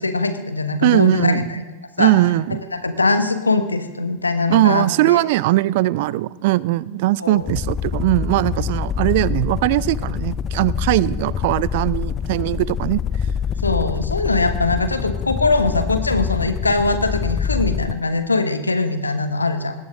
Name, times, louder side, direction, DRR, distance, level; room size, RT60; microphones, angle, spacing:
voice 1, 0.0-1.6 2.0-2.1 2.7-5.2 7.2-7.4 13.6-19.7, left 3 dB, 80° left, 10 dB, 1.2 m, -21 dB
voice 2, 0.8-1.5 2.0-2.6 4.5-13.0, right 17 dB, 50° right, 22 dB, 0.4 m, -19 dB
sound 1, 7.4-18.0, left 7 dB, 25° left, 0.4 m, -25 dB
19.0 x 16.5 x 3.7 m, 1.3 s
figure-of-eight pair, 90°, 0 cm